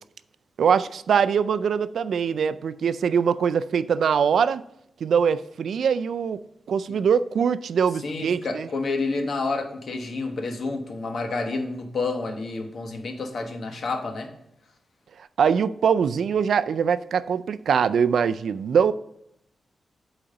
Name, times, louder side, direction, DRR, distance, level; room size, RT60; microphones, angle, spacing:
voice 1, 0.6-4.6 5.0-8.7 15.4-18.9, right 7 dB, 85° right, 14 dB, 0.3 m, -22 dB
voice 2, 8.0-14.3, left 3 dB, 60° left, 4 dB, 1.1 m, -29 dB
8.6 x 4.0 x 5.2 m, 0.76 s
wide cardioid pair, 155°, 0 cm